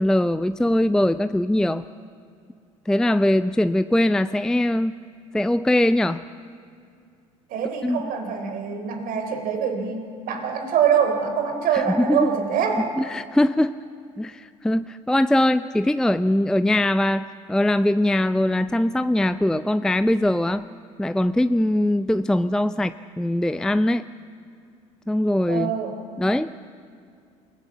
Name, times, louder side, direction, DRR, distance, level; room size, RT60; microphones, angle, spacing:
voice 1, 0.0-1.8 2.9-4.9 5.3-6.2 7.8-8.0 11.7-12.3 13.0-13.8 14.2-20.6 21.0-24.0 25.1-25.7 26.2-26.6, left 1 dB, 5° left, 13 dB, 0.5 m, -21 dB
voice 2, 7.5-12.9 25.5-26.0, right 7 dB, 55° right, 5 dB, 3.6 m, -24 dB
28.0 x 17.5 x 7.2 m, 2.4 s
hypercardioid pair, 65°, 17 cm